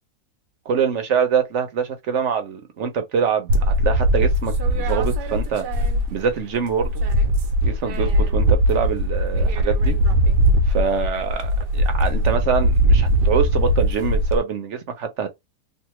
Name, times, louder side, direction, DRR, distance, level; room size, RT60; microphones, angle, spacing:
voice 1, 0.7-5.6 6.1-7.0 7.6-10.0 10.7-15.3, right 7 dB, 55° right, 1.0 m, -24 dB
sound 1, 3.5-6.3 6.6-14.4, equal, 80° right, 1.3 m, -20 dB
3.2 x 2.6 x 3.1 m
omnidirectional pair, 1.8 m